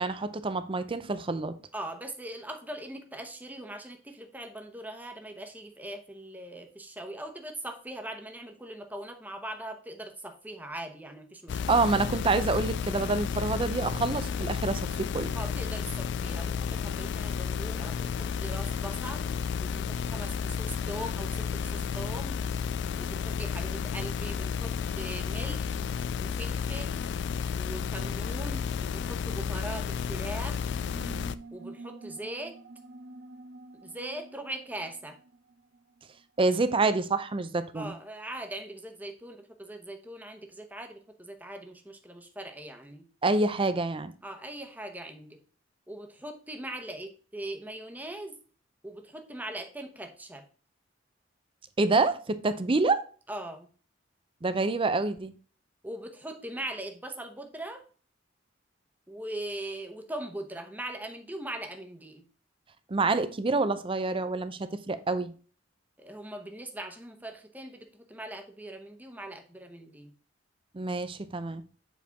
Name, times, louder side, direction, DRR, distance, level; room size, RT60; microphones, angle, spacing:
voice 1, 0.0-1.5 11.7-15.3 36.4-37.9 43.2-44.1 51.8-53.0 54.4-55.3 62.9-65.3 70.7-71.6, right 3 dB, 30° right, 0.5 m, -27 dB
voice 2, 1.7-11.8 15.3-22.4 23.0-25.8 26.2-27.0 27.5-30.8 31.5-32.6 33.8-35.2 37.7-43.1 44.2-45.4 45.9-48.4 48.8-50.4 53.3-53.7 55.8-57.8 59.1-62.3 66.0-70.1, right 1 dB, 10° right, 0.9 m, -41 dB
sound 1, 11.5-31.3, left 6 dB, 65° left, 0.4 m, -32 dB
sound 2, 30.8-36.0, right 2 dB, 65° right, 1.3 m, -47 dB
7.3 x 4.4 x 3.5 m
head